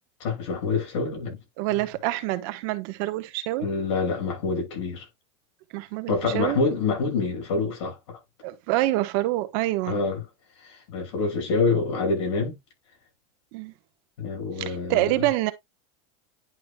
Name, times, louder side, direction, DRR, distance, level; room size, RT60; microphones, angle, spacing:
voice 1, 0.2-1.4 3.6-5.0 6.1-8.2 9.9-10.2 10.9-12.5 14.2-15.1, left 4 dB, 75° left, 6.0 m, -26 dB
voice 2, 1.6-3.7 5.7-6.6 8.4-10.0 13.5-13.7 14.6-15.5, right 16 dB, 50° right, 1.1 m, -26 dB
10.5 x 5.1 x 2.2 m
supercardioid pair, 160°, 15 cm